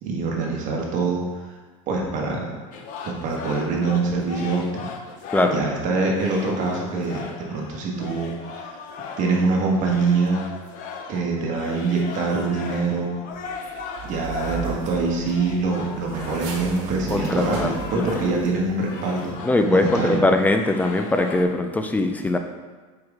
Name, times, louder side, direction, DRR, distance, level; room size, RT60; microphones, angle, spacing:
voice 1, 0.0-1.3 1.9-2.5 3.0-4.8 5.5-8.7 9.2-10.4 11.1-13.2 14.0-19.4 19.7-20.2, right 3 dB, 45° right, -1 dB, 1.5 m, -24 dB
sound 1, 2.7-5.7 6.1-18.5 18.8-21.4, left 5 dB, 50° left, 0.8 m, -38 dB
sound 2, 13.3-18.7 19.0-19.3, right 5 dB, 65° right, 1.3 m, -36 dB
voice 2, 17.1-18.0 19.4-22.4, left 2 dB, 10° left, 5 dB, 0.5 m, -21 dB
6.1 x 4.8 x 3.7 m, 1.3 s
supercardioid pair, 125°, 17 cm